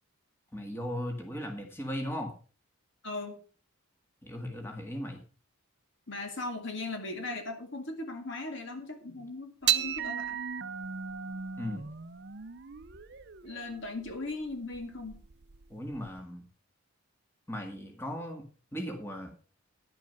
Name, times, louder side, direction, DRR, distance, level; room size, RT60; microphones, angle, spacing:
voice 1, 0.5-2.3 4.2-5.2 11.6-11.9 15.7-16.4 17.5-18.4 18.7-19.3, equal, 10° left, 3 dB, 1.9 m, -37 dB
voice 2, 3.0-3.4 6.1-10.4 13.4-15.2, left 2 dB, 55° left, 5 dB, 2.0 m, -38 dB
sound 1, 9.6-16.2, right 9 dB, 50° right, 0.6 m, -35 dB
10.5 x 7.3 x 5.6 m, 0.37 s
head